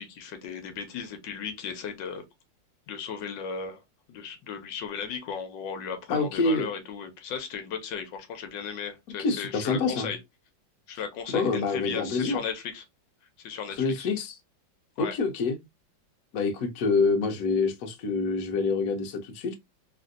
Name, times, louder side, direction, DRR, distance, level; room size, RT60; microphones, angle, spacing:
voice 1, 0.0-2.2 2.9-3.8 4.1-10.2 10.9-12.8 13.4-14.1 15.0-15.1, left 6 dB, 80° left, 1.3 m, -36 dB
voice 2, 6.1-6.6 9.2-10.1 11.3-12.4 13.8-14.4 15.0-15.6 16.3-19.5, left 4 dB, 65° left, 1.0 m, -26 dB
3.4 x 2.5 x 2.4 m
omnidirectional pair, 2.0 m